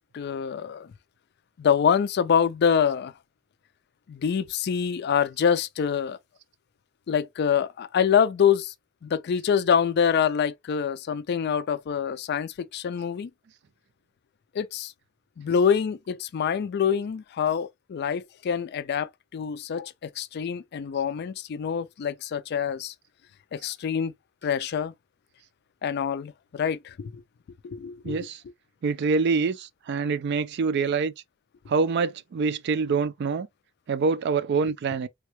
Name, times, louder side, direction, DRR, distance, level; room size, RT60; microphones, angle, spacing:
voice 1, 0.1-0.9 1.6-3.1 4.1-6.2 7.1-8.7 9.0-13.3 14.5-14.9 15.4-22.9 23.5-24.1 24.4-24.9 25.8-27.2 27.6-28.3, left 7 dB, 50° left, 0.3 m, -25 dB
voice 2, 28.0-28.4 28.8-31.1 31.7-33.5 33.9-35.1, right 4 dB, 55° right, 0.4 m, -25 dB
3.4 x 2.2 x 2.9 m
head